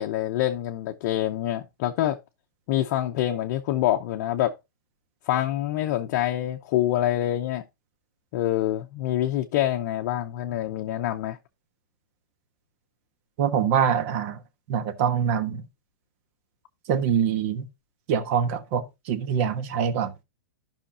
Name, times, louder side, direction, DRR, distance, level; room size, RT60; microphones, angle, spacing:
voice 1, 0.0-2.2 2.7-4.5 5.3-7.6 8.3-11.4, left 13 dB, 40° left, 0.8 m, -26 dB
voice 2, 13.4-14.4 14.7-15.7 16.9-17.7 18.1-20.1, right 8 dB, 40° right, 1.3 m, -24 dB
13.0 x 5.8 x 2.8 m
hypercardioid pair, 155°, 10 cm